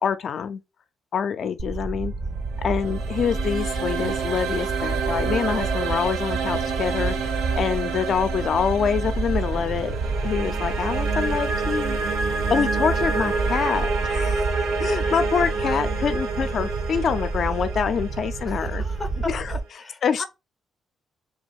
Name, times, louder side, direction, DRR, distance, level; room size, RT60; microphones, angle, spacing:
voice 1, 0.0-0.6 1.1-2.1 2.6-9.9 10.2-12.0 12.5-14.4 14.8-18.8 19.3-19.4 20.0-20.2, left 7 dB, 60° left, 0.6 m, -26 dB
sound 1, 1.6-19.6, right 3 dB, 45° right, 1.0 m, -29 dB
sound 2, 2.4-19.5, right 4 dB, 90° right, 0.8 m, -29 dB
voice 2, 9.5-10.2 18.4-20.2, left 2 dB, 15° left, 0.7 m, -38 dB
3.5 x 2.3 x 4.2 m
cardioid pair, 90°, 0 cm